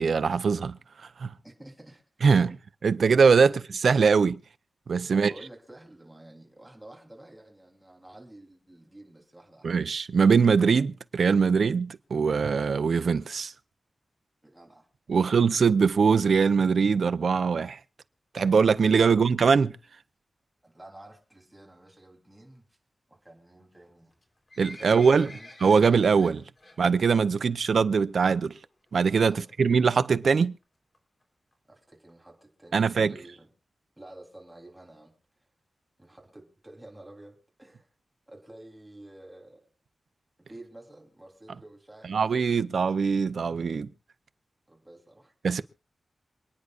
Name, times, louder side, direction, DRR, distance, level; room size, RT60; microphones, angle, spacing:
voice 1, 0.0-1.3 2.2-2.6 2.8-3.5 3.8-4.4 4.9-5.3 9.6-13.5 15.1-17.8 18.3-19.8 24.6-25.3 25.6-26.4 26.8-28.6 28.9-30.6 32.7-33.1 42.0-43.9 45.4-45.6, right 5 dB, 70° right, 0.6 m, -22 dB
voice 2, 1.4-2.0 2.3-2.6 3.4-3.5 5.0-9.7 14.4-15.3 20.6-22.6 23.1-24.2 24.7-25.5 29.3-29.4 31.7-33.5 34.0-35.1 36.0-37.9 38.3-39.6 40.4-42.4 44.7-45.3, right 1 dB, 10° right, 3.4 m, -50 dB
Livestock farm animals working animals, 24.1-26.8 27.1-27.4 27.7-27.8 28.5-28.6 28.9-29.0 29.1-29.2 29.8-30.0 30.6-30.7 30.9-31.0 31.2-31.3 31.5-31.6 32.1-32.2 32.7-32.8 33.2-33.3, left 2 dB, 35° left, 3.8 m, -48 dB
27.5 x 9.6 x 2.5 m
wide cardioid pair, 150°, 0 cm